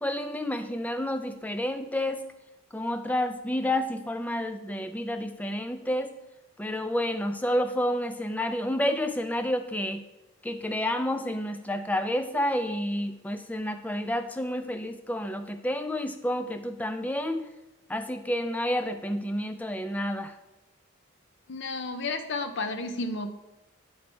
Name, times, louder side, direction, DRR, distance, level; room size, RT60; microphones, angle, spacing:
voice 1, 0.0-2.2 2.7-6.1 6.6-10.0 10.4-17.5 17.9-20.3, left 1 dB, 5° left, 9 dB, 0.3 m, -30 dB
voice 2, 21.5-23.3, left 3 dB, 55° left, 8 dB, 0.6 m, -32 dB
8.3 x 4.4 x 4.3 m, 0.98 s
head